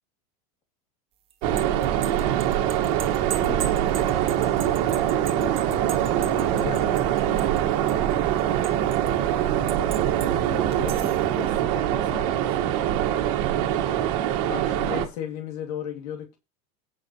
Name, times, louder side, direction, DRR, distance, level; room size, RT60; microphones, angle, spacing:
sound 1, 1.3-7.6 7.9-9.1 9.7-10.3 10.7-11.2, right 10 dB, 30° right, 1.7 m, -38 dB
sound 2, 1.4-15.1, right 11 dB, 60° right, 1.8 m, -23 dB
voice 1, 1.5-1.9 3.4-4.0 5.2-8.3 10.2-12.4, left 2 dB, 20° left, 3.2 m, -41 dB
voice 2, 6.5-6.9 10.7-11.1 14.4-16.4, left 9 dB, 80° left, 2.6 m, -34 dB
18.0 x 6.3 x 3.1 m
supercardioid pair, 150°, 20 cm